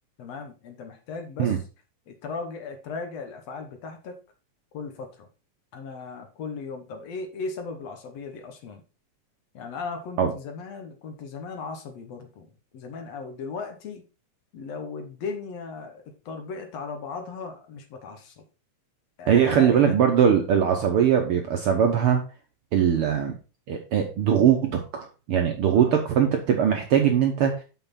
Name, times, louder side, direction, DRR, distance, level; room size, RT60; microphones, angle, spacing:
voice 1, 0.2-1.6 2.1-4.2 4.7-5.3 5.7-8.8 9.5-12.5 12.7-14.0 14.5-18.4 19.2-20.0 25.7-25.9, left 4 dB, 65° left, 5 dB, 2.1 m, -37 dB
voice 2, 19.3-22.2 22.7-23.3 23.7-27.5, right 8 dB, 70° right, 3 dB, 1.4 m, -21 dB
6.5 x 5.9 x 4.1 m, 0.33 s
omnidirectional pair, 3.4 m